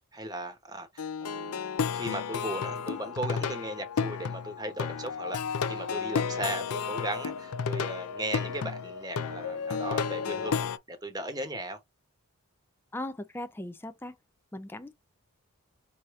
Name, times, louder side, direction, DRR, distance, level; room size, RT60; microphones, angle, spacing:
voice 1, 0.1-11.8, right 1 dB, 15° right, 1.0 m, -37 dB
Plucked string instrument, 1.0-10.8, left 6 dB, 80° left, 0.5 m, -32 dB
voice 2, 12.9-14.1 14.5-14.9, left 1 dB, 10° left, 0.3 m, -38 dB
4.9 x 2.7 x 3.1 m
head